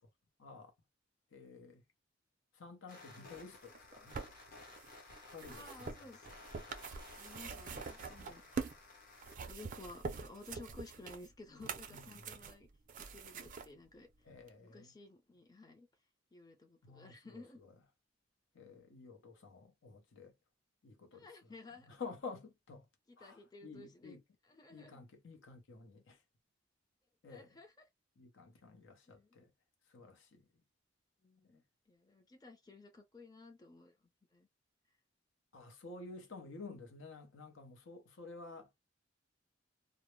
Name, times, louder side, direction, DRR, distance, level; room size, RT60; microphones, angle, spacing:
voice 1, 0.4-0.7 1.3-1.8 2.5-4.2 5.3-5.9 7.7-7.9 11.5-12.5 14.2-14.9 16.8-17.7 18.5-20.3 20.8-21.3 21.8-22.9 23.2-24.2 24.7-26.2 27.2-27.6 28.2-29.5 29.9-30.5 35.5-38.7, left 4 dB, 90° left, 0.7 m, -51 dB
sound 1, 2.9-9.4, left 3 dB, 50° left, 0.8 m, -56 dB
sound 2, 3.7-8.8 9.2-13.7 14.5-14.6, right 5 dB, 45° right, 0.4 m, -45 dB
voice 2, 5.5-6.3 7.2-8.4 9.5-12.7 13.0-14.1 14.6-15.9 16.3-17.6 21.1-22.0 23.1-24.2 24.4-25.0 27.3-27.8 29.1-29.4 31.2-33.9 34.3-34.5, left 2 dB, 20° left, 0.5 m, -55 dB
2.0 x 2.0 x 3.0 m
head